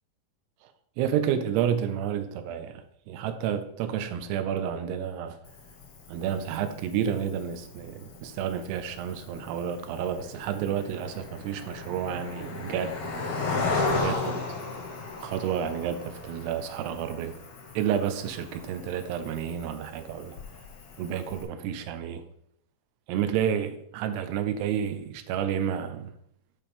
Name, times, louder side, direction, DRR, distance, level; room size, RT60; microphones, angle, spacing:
voice 1, 1.0-5.4 6.1-13.0 13.9-14.6 15.2-17.4 17.8-20.4 21.0-22.2 23.1-26.1, right 9 dB, 85° right, 2.7 m, -30 dB
Cricket, 5.4-21.4, left 3 dB, 65° left, 1.5 m, -36 dB
11.0 x 4.9 x 3.6 m
omnidirectional pair, 4.8 m